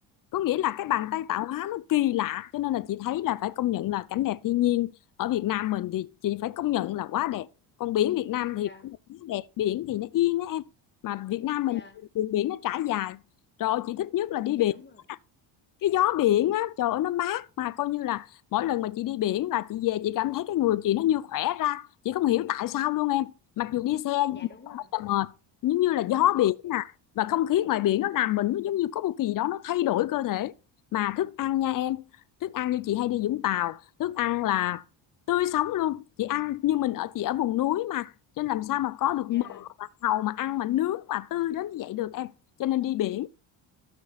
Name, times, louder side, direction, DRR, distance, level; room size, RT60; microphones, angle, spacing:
voice 1, 0.3-4.9 5.2-7.5 7.8-8.7 9.2-10.7 11.0-11.8 12.2-13.2 13.6-14.7 15.8-24.4 24.7-25.3 25.6-30.5 30.9-32.0 32.4-34.8 35.3-39.7 40.0-42.3 42.6-43.3, left 14 dB, 45° left, 0.5 m, -27 dB
voice 2, 8.5-8.9 11.7-12.0 14.6-15.1 24.3-25.0 26.4-26.5 39.3-39.7, left 4 dB, 25° left, 1.6 m, -50 dB
16.0 x 6.1 x 2.4 m
cardioid pair, 120°, 45 cm